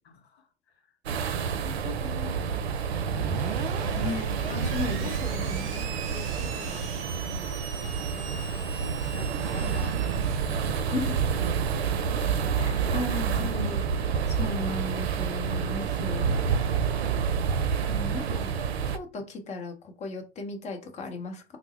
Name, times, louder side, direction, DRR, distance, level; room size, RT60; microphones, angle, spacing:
voice 1, 0.0-0.9 1.4-2.6 3.7-4.2 4.5-11.1 11.5-12.6 13.2-14.8 16.2-17.4, left 5 dB, 80° left, 0.8 m, -44 dB
sound 1, 1.1-19.0, right 6 dB, 80° right, 0.5 m, -28 dB
Screech, 3.0-13.5, right 5 dB, 40° right, 0.9 m, -41 dB
voice 2, 4.0-5.7 10.9-11.2 12.6-13.9 14.3-16.3 17.9-21.4, left 3 dB, 20° left, 0.8 m, -36 dB
3.4 x 2.0 x 3.1 m
hypercardioid pair, 100°, 31 cm